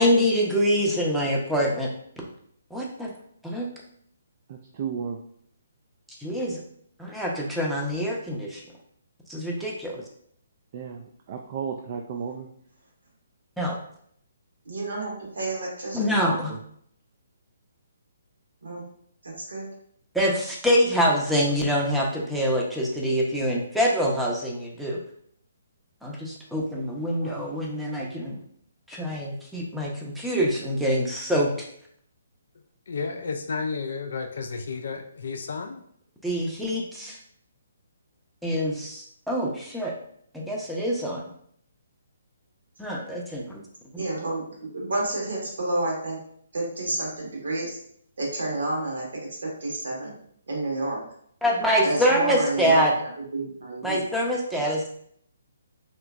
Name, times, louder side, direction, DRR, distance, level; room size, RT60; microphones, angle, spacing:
voice 1, 0.0-1.9 2.7-3.1 3.4-3.7 6.2-6.6 7.0-8.6 9.3-10.0 13.6-13.8 15.9-16.5 20.1-25.0 26.0-28.4 28.9-31.5 36.2-37.2 38.4-39.9 40.3-41.2 42.8-43.6 51.4-52.9 53.8-54.9, equal, ahead, 0.6 m, -25 dB
voice 2, 4.5-5.2 9.9-10.0 10.7-12.5 16.5-16.6, right 6 dB, 45° right, 0.3 m, -34 dB
voice 3, 14.6-16.1 18.6-18.8 19.2-19.7 27.2-27.6 44.0-46.2 46.5-47.8 48.2-49.0 49.3-50.1 50.5-51.0 51.8-52.8 53.3-54.0, right 2 dB, 70° right, 1.3 m, -30 dB
voice 4, 32.9-35.8, left 4 dB, 65° left, 0.4 m, -32 dB
3.3 x 3.0 x 2.4 m
figure-of-eight pair, 140°, 0 cm